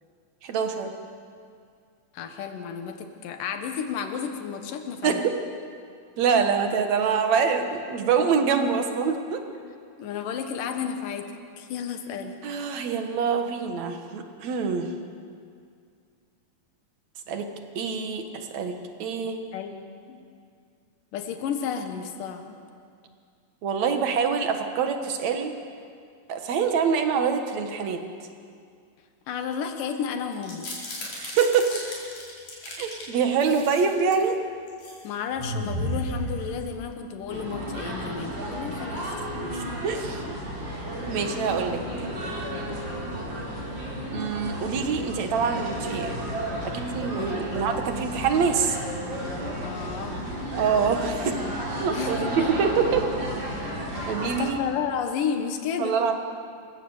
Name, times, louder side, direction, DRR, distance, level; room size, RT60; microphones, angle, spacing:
voice 1, 0.4-0.9 5.0-5.3 6.2-9.4 12.4-14.9 17.3-17.5 17.8-19.4 23.6-25.5 26.3-28.0 31.1-31.7 32.7-34.3 39.5-40.2 41.1-42.1 44.1-46.1 46.6-48.8 50.6-51.4 51.8-53.1 54.1-54.6 55.8-56.1, right 6 dB, 60° right, 6 dB, 2.6 m, -25 dB
voice 2, 2.1-5.2 10.0-12.4 19.5-20.2 21.1-22.6 29.3-30.7 35.0-39.1 47.2-47.5 49.6-50.2 51.9-52.5 53.9-56.0, left 7 dB, 85° left, 6 dB, 3.0 m, -32 dB
sound 1, 30.3-33.0 33.4-34.3 34.7-35.0 35.4-37.0, equal, 65° left, 5.9 m, -34 dB
sound 2, 37.3-54.5, right 1 dB, 35° right, 5.4 m, -33 dB
27.5 x 16.0 x 7.2 m, 2.3 s
omnidirectional pair, 3.7 m